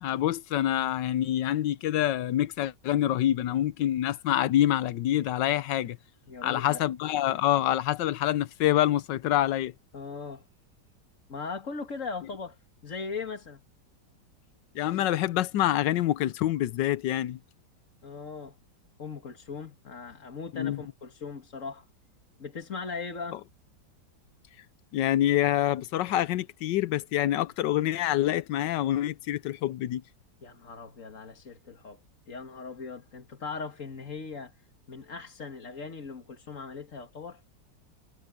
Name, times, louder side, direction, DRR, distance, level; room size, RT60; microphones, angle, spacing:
voice 1, 0.0-6.0 6.4-9.7 14.7-17.4 20.5-20.8 24.9-30.0, left 13 dB, 80° left, 1.4 m, -26 dB
voice 2, 6.3-6.8 9.9-10.5 11.3-12.6 12.8-13.6 18.0-18.6 19.0-21.9 22.4-23.4 30.4-32.0 32.3-34.5 34.9-37.4, left 4 dB, 45° left, 2.1 m, -39 dB
omnidirectional pair, 1.9 m